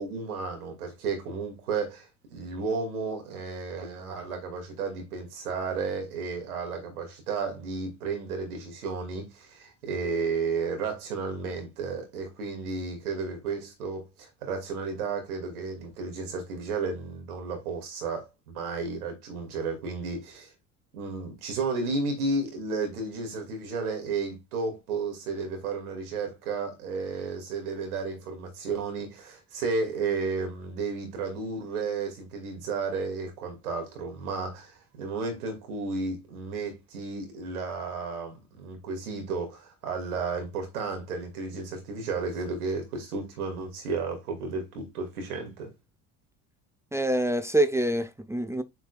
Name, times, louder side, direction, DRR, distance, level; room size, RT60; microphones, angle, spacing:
voice 1, 0.0-20.5 20.9-45.7, right 4 dB, 80° right, 2.4 m, -33 dB
voice 2, 46.9-48.6, right 1 dB, 5° right, 0.6 m, -25 dB
8.9 x 4.7 x 2.4 m
hypercardioid pair, 60°, 43 cm